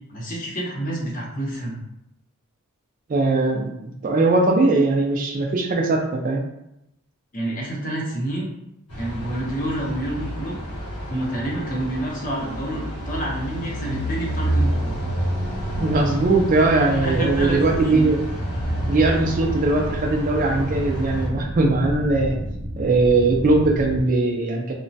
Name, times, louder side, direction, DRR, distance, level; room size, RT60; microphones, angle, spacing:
voice 1, 0.1-1.8 7.3-8.5 9.0-10.6 11.1-14.9 17.0-18.1, right 1 dB, 40° left, -2 dB, 0.6 m, -28 dB
voice 2, 3.1-6.4 15.8-18.2 18.9-22.4 22.8-24.7, right 2 dB, 35° right, 2 dB, 0.3 m, -20 dB
sound 1, 8.9-21.3, equal, 90° left, 1.1 m, -29 dB
sound 2, 14.5-24.0, equal, 80° right, 0.7 m, -31 dB
2.9 x 2.1 x 2.6 m, 0.84 s
head